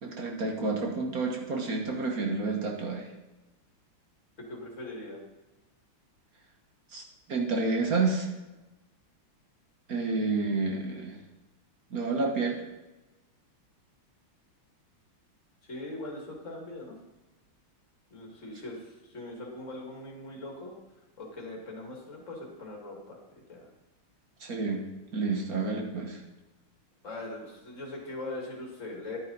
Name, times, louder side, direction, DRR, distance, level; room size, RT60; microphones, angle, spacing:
voice 1, 0.0-3.1 6.9-8.3 9.9-11.2 11.9-12.6 24.4-24.8 25.1-26.2, right 3 dB, 50° right, 1 dB, 1.6 m, -29 dB
voice 2, 4.4-5.2 15.6-17.0 18.1-20.7 21.2-23.2 23.5-23.7 27.0-29.2, left 2 dB, 35° left, -1 dB, 2.6 m, -41 dB
11.5 x 9.1 x 4.0 m, 1.1 s
omnidirectional pair, 2.3 m